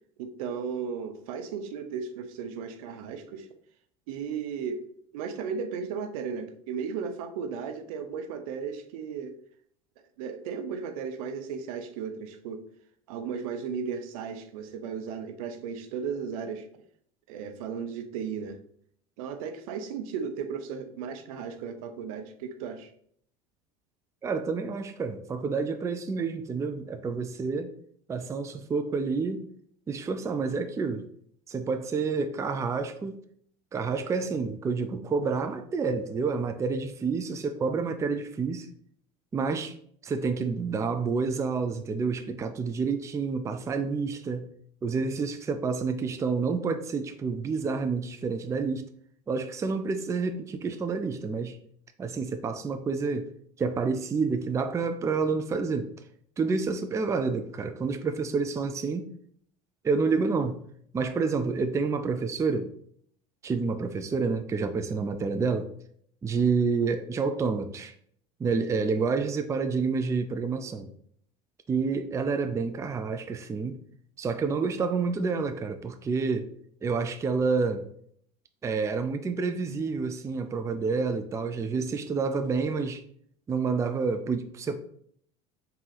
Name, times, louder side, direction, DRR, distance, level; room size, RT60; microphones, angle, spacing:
voice 1, 0.2-3.5 4.1-4.9 5.1-9.3 10.2-12.6 13.1-16.7 17.3-18.6 19.2-22.9 68.5-68.7, right 6 dB, 75° right, 8 dB, 0.6 m, -35 dB
voice 2, 24.2-27.7 28.1-29.5 29.9-31.0 31.5-33.2 33.7-38.7 39.3-39.7 40.0-44.5 44.8-48.9 49.3-51.6 52.0-53.3 53.6-55.9 56.4-59.1 59.8-60.6 60.9-62.7 63.4-65.7 66.2-67.9 68.4-70.9 71.7-73.8 74.2-76.5 76.8-77.9 78.6-83.0 83.5-84.8, right 4 dB, 15° right, 8 dB, 0.4 m, -29 dB
3.7 x 2.8 x 4.0 m, 0.63 s
supercardioid pair, 95°, 18 cm